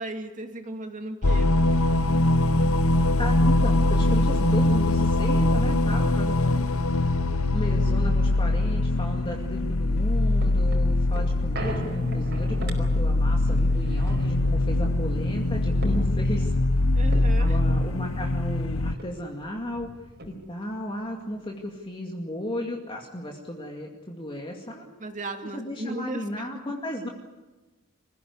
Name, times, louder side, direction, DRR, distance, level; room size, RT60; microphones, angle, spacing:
voice 1, 0.0-1.5 16.9-17.6 25.0-26.2, right 2 dB, 40° right, 5 dB, 2.6 m, -35 dB
sound 1, 1.2-18.9, left 2 dB, 80° left, 1.0 m, -22 dB
voice 2, 3.2-6.6 7.5-16.5 17.4-19.9 20.3-24.8 25.4-27.1, left 1 dB, 25° left, 0 dB, 2.3 m, -34 dB
sound 2, 9.9-18.6 19.0-19.1 19.3-20.7 21.2-21.3, right 1 dB, 55° right, 4.7 m, -40 dB
26.0 x 16.0 x 9.7 m, 1.2 s
head